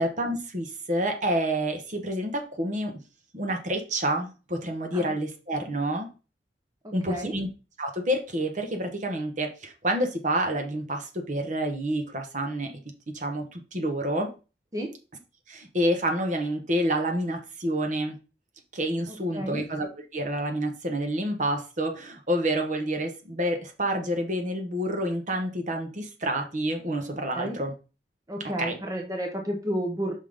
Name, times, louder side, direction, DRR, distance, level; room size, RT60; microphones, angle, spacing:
voice 1, 0.0-2.9 3.3-6.1 6.9-7.5 7.8-12.8 13.1-14.3 15.5-18.2 18.7-19.9 20.1-27.7 28.4-28.8, right 1 dB, 45° right, 5 dB, 1.2 m, -28 dB
voice 2, 6.8-7.3 14.7-14.9 19.3-19.6 27.3-27.6 28.3-30.1, equal, 20° right, 1 dB, 0.9 m, -31 dB
5.6 x 3.8 x 5.0 m, 0.32 s
head